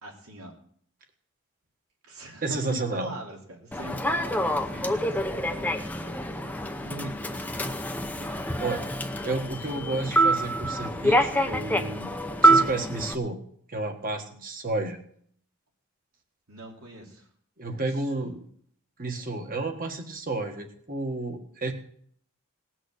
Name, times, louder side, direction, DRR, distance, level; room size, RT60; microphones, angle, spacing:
voice 1, 0.0-0.5 2.0-6.2 6.7-7.5 7.7-8.5 16.5-17.3 17.7-18.3, right 1 dB, 80° right, 0 dB, 3.1 m, -43 dB
voice 2, 2.4-3.1 4.8-5.0 8.6-8.8 9.2-12.1 12.4-13.4 13.7-15.0 17.6-18.4 19.0-21.7, right 2 dB, 40° right, 5 dB, 1.7 m, -31 dB
Human voice / Subway metro underground, 3.7-13.1, right 1 dB, 10° left, 0.7 m, -26 dB
18.5 x 6.3 x 6.6 m, 0.62 s
head